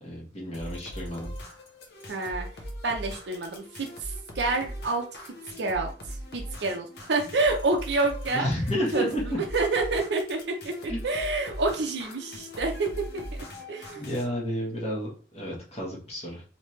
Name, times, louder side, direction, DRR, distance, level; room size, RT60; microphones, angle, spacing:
voice 1, 0.0-1.3 8.3-9.4 10.9-11.0 13.9-16.4, equal, 35° left, -3 dB, 1.1 m, -31 dB
sound 1, 0.5-14.2, equal, 60° left, 0.9 m, -40 dB
voice 2, 2.1-2.5 2.8-8.5 8.9-9.1 9.5-13.2 13.7-14.0, right 3 dB, 65° right, 2 dB, 0.6 m, -28 dB
3.2 x 2.8 x 3.1 m, 0.39 s
head